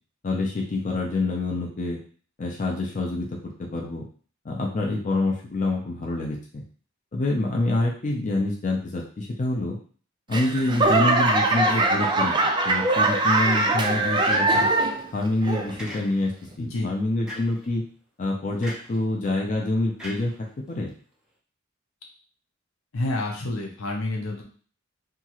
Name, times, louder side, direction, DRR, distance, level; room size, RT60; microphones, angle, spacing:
voice 1, 0.2-2.0 2.4-4.0 4.4-6.6 7.1-9.8 10.3-14.7 15.1-17.8 18.2-20.3 20.7-20.9, left 2 dB, 40° left, -1 dB, 0.5 m, -26 dB
Laughter / Clapping / Crowd, 10.3-15.1 15.4-15.9 16.5-16.6, right 2 dB, 20° right, 0.3 m, -22 dB
sound 1, 14.2-14.9 15.8-16.4 17.3-17.7 18.6-19.0 20.0-20.9, equal, 5° right, 0.7 m, -40 dB
voice 2, 16.6-16.9 22.9-24.4, left 2 dB, 75° left, 1 dB, 0.7 m, -29 dB
2.8 x 2.4 x 2.9 m, 0.43 s
head